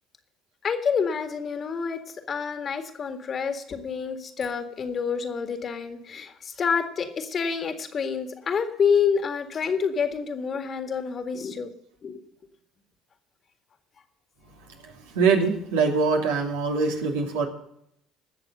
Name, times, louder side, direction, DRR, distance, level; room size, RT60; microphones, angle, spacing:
voice 1, 0.6-2.0 2.3-11.7 12.0-12.2, left 6 dB, 45° left, 7 dB, 1.9 m, -28 dB
voice 2, 14.8-17.5, right 4 dB, 80° right, 1 dB, 2.7 m, -23 dB
19.5 x 6.9 x 5.5 m, 0.74 s
hypercardioid pair, 65°, 0 cm